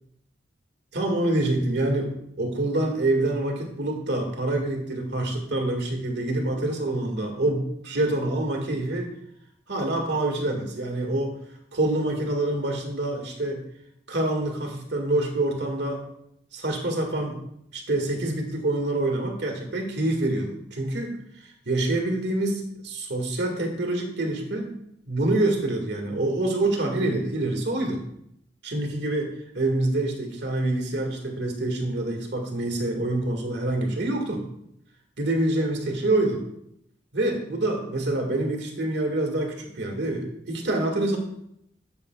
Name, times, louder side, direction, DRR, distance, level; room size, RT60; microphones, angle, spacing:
voice 1, 0.9-9.1 9.7-11.4 11.7-13.6 14.1-16.1 16.5-17.4 17.7-21.2 21.6-24.8 25.1-28.0 28.6-34.4 35.2-36.4 37.1-41.2, right 2 dB, 70° right, 2 dB, 1.7 m, -26 dB
12.5 x 7.0 x 2.3 m, 0.74 s
head